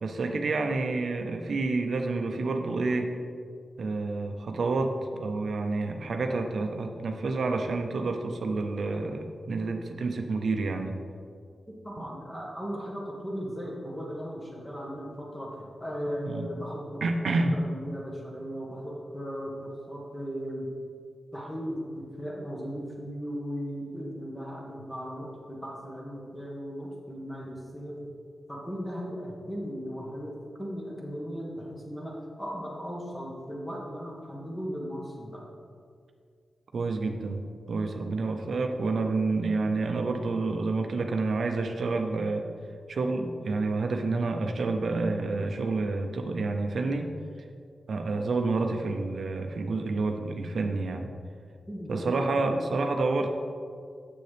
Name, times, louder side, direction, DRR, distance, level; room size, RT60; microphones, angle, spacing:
voice 1, 0.0-3.1 3.8-11.0 16.3-16.5 17.0-17.6 36.7-37.4 37.7-42.5 42.9-47.1 47.9-51.1 51.9-53.3, right 3 dB, 70° right, 4 dB, 0.5 m, -29 dB
voice 2, 11.8-20.7 21.3-28.1 28.5-35.4 51.7-53.1, equal, 10° left, -3 dB, 1.6 m, -37 dB
7.7 x 6.6 x 3.3 m, 2.3 s
wide cardioid pair, 90°, 0 cm